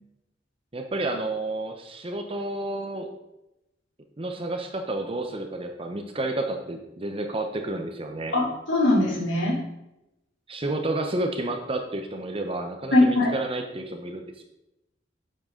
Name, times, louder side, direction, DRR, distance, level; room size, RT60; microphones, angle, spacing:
voice 1, 0.7-3.1 4.2-8.3 10.5-14.4, right 2 dB, 30° right, 5 dB, 0.7 m, -30 dB
voice 2, 8.3-9.6 12.9-13.3, left 1 dB, 85° left, -4 dB, 3.3 m, -21 dB
9.3 x 7.7 x 3.7 m, 0.92 s
head